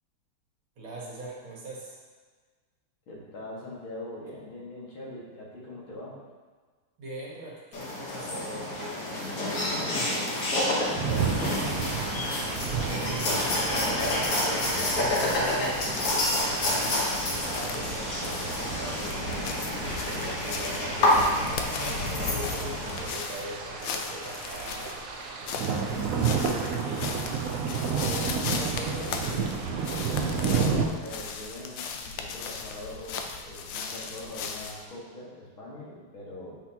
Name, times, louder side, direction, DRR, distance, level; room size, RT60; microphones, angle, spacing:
voice 1, 0.8-2.0 7.0-21.5 21.9-24.9 25.2-27.3 27.9-29.4, right 1 dB, 70° right, -5 dB, 2.3 m, -41 dB
voice 2, 3.1-6.2 12.8-13.2 30.4-36.6, left 1 dB, 70° left, -6 dB, 2.6 m, -42 dB
sound 1, 7.7-23.0, left 1 dB, 50° left, 1.5 m, -29 dB
sound 2, 10.9-30.9, right 5 dB, 85° right, 0.7 m, -32 dB
sound 3, 15.0-34.8, left 5 dB, 90° left, 1.5 m, -38 dB
8.5 x 6.1 x 2.9 m, 1.4 s
omnidirectional pair, 2.3 m